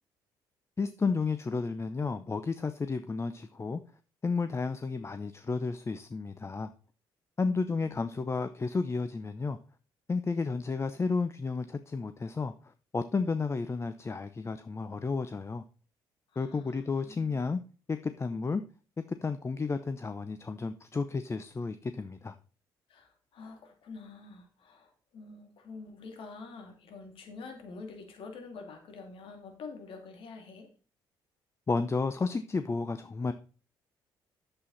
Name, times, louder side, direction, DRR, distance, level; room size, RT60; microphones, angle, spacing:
voice 1, 0.8-3.8 4.2-6.7 7.4-9.6 10.1-15.6 16.4-17.6 17.9-18.6 19.0-22.3 31.7-33.3, left 4 dB, 30° left, 10 dB, 0.7 m, -32 dB
voice 2, 7.4-7.9 16.3-17.6 22.9-30.7, left 4 dB, 65° left, 4 dB, 2.6 m, -47 dB
8.6 x 7.7 x 4.1 m, 0.36 s
supercardioid pair, 65°, 10 cm